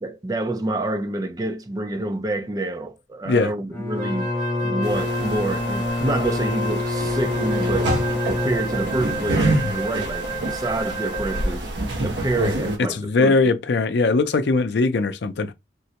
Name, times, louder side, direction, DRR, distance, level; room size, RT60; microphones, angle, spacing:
voice 1, 0.0-4.3 4.6-8.0 8.2-13.3, right 2 dB, 20° right, 0.4 m, -27 dB
Bowed string instrument, 3.7-9.2, left 2 dB, 15° left, 0.7 m, -26 dB
Wind instrument woodwind instrument, 4.0-11.6, right 1 dB, 50° right, 1.6 m, -31 dB
sound 1, 4.8-12.8, right 1 dB, 70° right, 1.1 m, -27 dB
voice 2, 12.8-15.5, left 3 dB, 65° left, 0.4 m, -20 dB
3.7 x 2.1 x 2.8 m
head